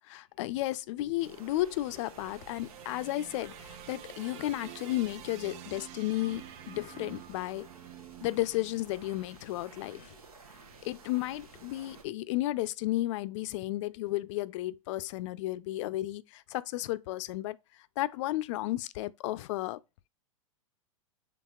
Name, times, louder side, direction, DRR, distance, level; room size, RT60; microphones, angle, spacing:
voice 1, 0.1-7.7 8.2-10.2 10.8-17.6 18.0-19.8, left 16 dB, 55° left, 0.4 m, -33 dB
sound 1, 1.1-9.4, right 12 dB, 40° right, 0.4 m, -50 dB
sound 2, 1.2-12.0, right 4 dB, 90° right, 1.0 m, -53 dB
5.8 x 3.5 x 2.3 m
hypercardioid pair, 110°, 18 cm